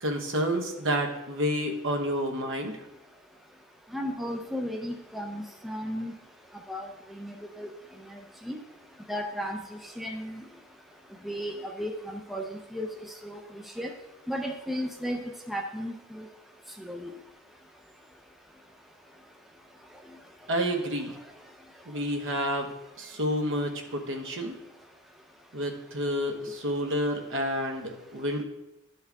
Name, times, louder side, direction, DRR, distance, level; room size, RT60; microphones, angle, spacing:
voice 1, 0.0-2.8 20.5-21.1 21.9-22.7 23.0-24.6 25.5-28.4, equal, 60° right, 3 dB, 1.1 m, -29 dB
voice 2, 3.9-6.1 6.7-7.7 8.1-8.2 8.5-8.6 9.1-9.6 10.0-10.4 11.2-12.9 13.2-13.9 14.3-16.3 16.8-17.1, equal, ahead, 3 dB, 0.4 m, -34 dB
12.5 x 4.4 x 3.5 m, 0.94 s
head